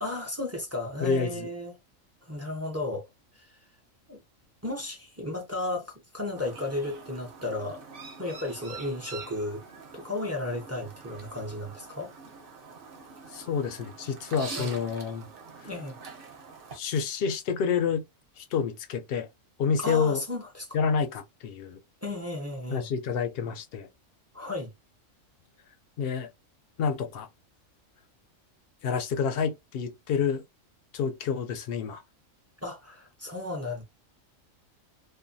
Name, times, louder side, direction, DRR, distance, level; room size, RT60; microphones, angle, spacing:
voice 1, 0.0-1.7 2.2-3.1 3.3-3.6 4.1-4.2 4.6-7.8 8.2-9.6 9.9-12.1 14.6-14.7 15.6-16.0 19.8-20.8 22.0-22.9 24.3-24.7 32.6-33.8, left 2 dB, 20° right, 0.4 m, -34 dB
voice 2, 1.0-1.5 13.3-15.3 16.7-18.0 18.4-19.3 19.6-20.2 20.7-21.8 22.7-23.9 26.0-26.3 26.8-27.3 28.8-30.4 30.9-32.0, left 6 dB, 65° left, 0.6 m, -28 dB
Chirp tweet, 6.4-16.8, right 4 dB, 50° right, 0.9 m, -45 dB
2.6 x 2.1 x 2.6 m
omnidirectional pair, 1.4 m